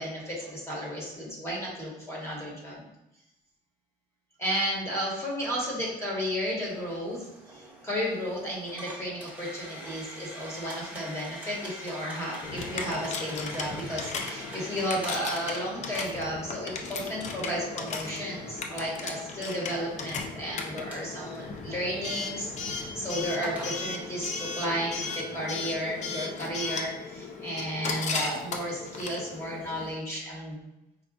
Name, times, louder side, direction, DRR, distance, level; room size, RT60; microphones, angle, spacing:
voice 1, 0.0-2.8 4.4-30.6, equal, 15° left, -4 dB, 1.2 m, -33 dB
sound 1, 6.7-24.4, equal, 10° right, 0.8 m, -45 dB
Coin (dropping) / Alarm, 12.4-29.9, left 4 dB, 45° left, 0.4 m, -36 dB
4.7 x 2.3 x 2.5 m, 0.87 s
cardioid pair, 110°, 17 cm